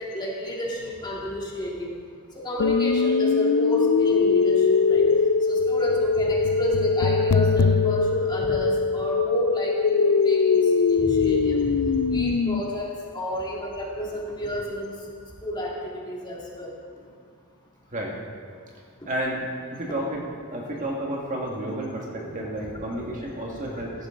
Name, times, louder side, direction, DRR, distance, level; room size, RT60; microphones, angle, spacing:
voice 1, 0.0-1.9 2.4-5.1 5.5-10.6 10.9-14.9 15.4-16.7 19.0-19.1 22.3-22.4 22.6-22.7, equal, 20° left, -4 dB, 2.1 m, -31 dB
sound 1, 2.6-12.6, left 5 dB, 75° left, 0.4 m, -21 dB
voice 2, 19.1-20.2 20.5-23.9, right 1 dB, 35° right, -2 dB, 1.9 m, -31 dB
16.0 x 11.0 x 3.8 m, 2.1 s
head